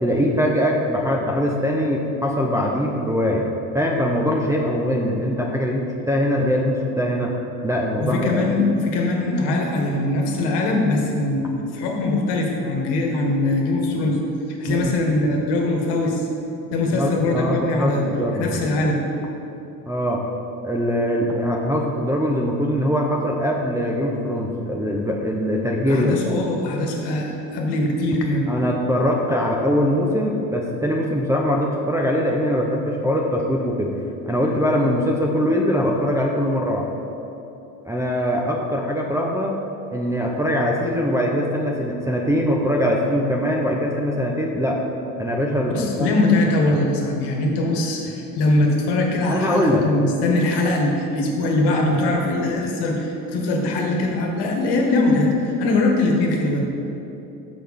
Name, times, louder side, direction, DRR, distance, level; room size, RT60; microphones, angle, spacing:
voice 1, 0.0-3.4 3.7-7.4 7.6-8.5 14.6-14.9 16.9-18.7 19.9-20.2 20.6-26.4 28.5-33.9 34.3-36.9 37.8-39.6 39.9-44.8 45.2-46.1 49.3-49.9, equal, 5° right, -2 dB, 0.7 m, -22 dB
voice 2, 8.0-14.2 14.5-16.2 16.7-18.0 18.4-19.0 25.9-28.4 45.7-56.7, left 2 dB, 55° left, 1 dB, 1.6 m, -21 dB
6.4 x 6.1 x 5.3 m, 2.9 s
hypercardioid pair, 70°, 49 cm